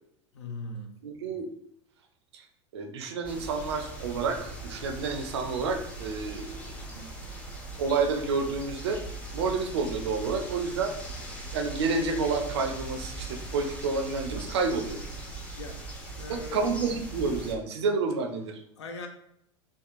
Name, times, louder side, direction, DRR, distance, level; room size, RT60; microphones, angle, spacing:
voice 1, 0.3-1.0 15.5-15.8 16.1-16.7 18.8-19.1, left 2 dB, 65° left, 4 dB, 0.5 m, -39 dB
voice 2, 1.0-1.5 2.3-2.4 2.7-7.1 7.8-9.0 9.3-10.9 11.5-15.0 16.3-18.6, right 4 dB, 60° right, 5 dB, 0.4 m, -29 dB
sound 1, 3.2-17.5, right 2 dB, 10° left, 0.5 m, -40 dB
2.6 x 2.2 x 2.4 m, 0.74 s
figure-of-eight pair, 85°, 16 cm